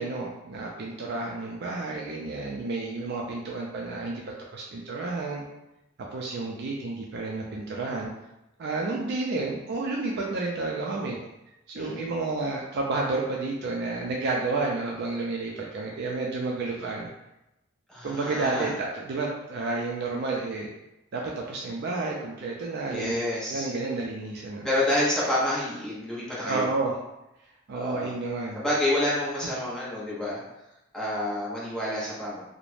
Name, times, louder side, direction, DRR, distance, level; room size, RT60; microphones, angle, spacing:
voice 1, 0.0-4.2 4.5-5.5 6.1-8.1 8.6-11.2 11.7-17.1 18.0-20.7 21.1-23.2 23.5-24.7 26.5-27.0 27.7-28.6, right 3 dB, 55° right, -2 dB, 0.4 m, -31 dB
voice 2, 17.9-18.7 22.9-23.7 24.6-26.7 27.7-28.1 28.5-30.4 30.9-32.4, left 1 dB, 5° left, -8 dB, 0.8 m, -28 dB
2.4 x 2.1 x 3.1 m, 0.90 s
head